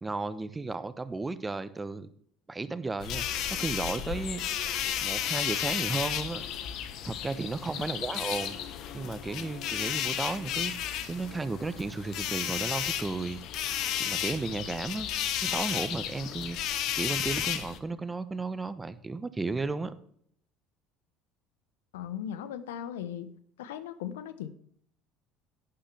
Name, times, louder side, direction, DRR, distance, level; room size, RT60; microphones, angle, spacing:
voice 1, 0.0-2.1 2.5-4.4 5.0-6.4 7.0-8.6 8.9-13.7 14.0-15.1 15.4-19.9, right 3 dB, 20° right, 14 dB, 0.9 m, -34 dB
sound 1, 3.0-17.8, left 10 dB, 60° left, 1.1 m, -33 dB
voice 2, 21.9-23.3 23.6-24.5, left 10 dB, 75° left, 14 dB, 0.7 m, -38 dB
11.5 x 10.0 x 3.4 m, 0.63 s
hypercardioid pair, 65°, 0 cm